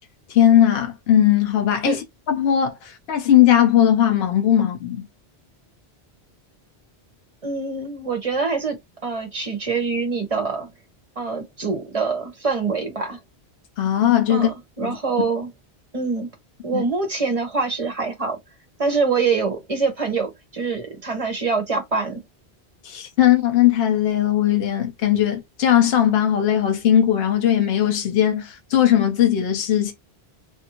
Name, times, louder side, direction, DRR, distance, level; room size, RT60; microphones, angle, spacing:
voice 1, 0.3-5.1 13.8-14.5 14.8-15.0 16.7-16.8 22.8-29.9, left 10 dB, 75° left, 0.9 m, -18 dB
voice 2, 7.4-10.7 11.2-13.2 14.3-15.5 15.9-16.3 16.6-18.4 18.8-22.2, right 4 dB, 35° right, 0.9 m, -25 dB
2.7 x 2.5 x 2.8 m
omnidirectional pair, 1.1 m